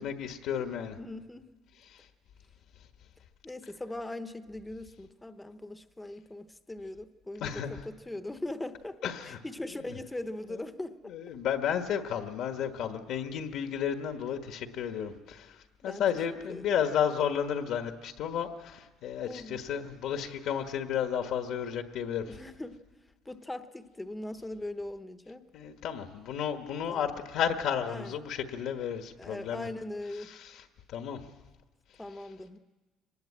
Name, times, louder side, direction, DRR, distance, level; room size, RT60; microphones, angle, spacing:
voice 1, 0.0-1.0 7.4-7.7 9.0-9.4 11.1-15.5 15.8-22.2 25.5-29.7 30.9-31.2, left 8 dB, 60° left, 6 dB, 1.4 m, -32 dB
voice 2, 1.0-1.4 3.4-11.1 15.0-15.2 15.8-16.8 19.2-19.6 22.3-22.8 23.2-25.4 26.9-27.1 27.9-28.2 29.2-30.3 32.0-32.6, left 1 dB, 10° left, 10 dB, 0.8 m, -40 dB
24.5 x 19.5 x 8.6 m, 1.2 s
cardioid pair, 170°, 0 cm